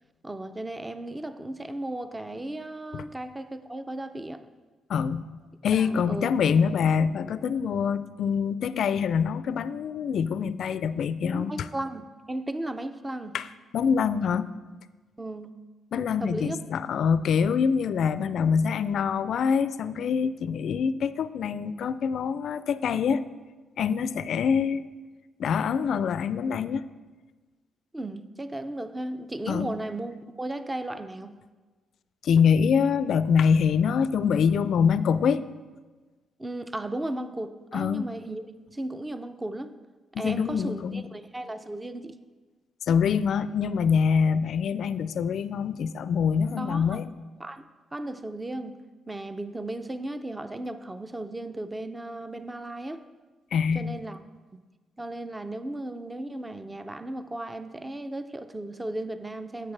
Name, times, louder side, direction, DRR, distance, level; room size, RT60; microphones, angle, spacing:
voice 1, 0.2-4.4 5.7-6.3 11.3-13.3 15.2-15.5 16.2-16.6 27.9-31.4 36.4-38.5 38.7-39.7 40.2-42.2 46.6-47.0 47.4-47.6 47.9-48.8 49.1-53.0 53.7-54.2 54.5-54.6 55.0-59.7, right 1 dB, 15° right, 11 dB, 0.5 m, -35 dB
voice 2, 4.9-5.2 5.6-11.7 13.3-13.5 13.7-14.5 15.9-23.2 23.8-24.8 25.4-26.8 29.5-29.8 32.2-35.4 37.7-38.1 40.1-41.1 42.9-47.1 53.5-53.9, left 6 dB, 65° left, 14 dB, 0.3 m, -25 dB
10.5 x 8.1 x 3.3 m, 1.3 s
cardioid pair, 90°, 0 cm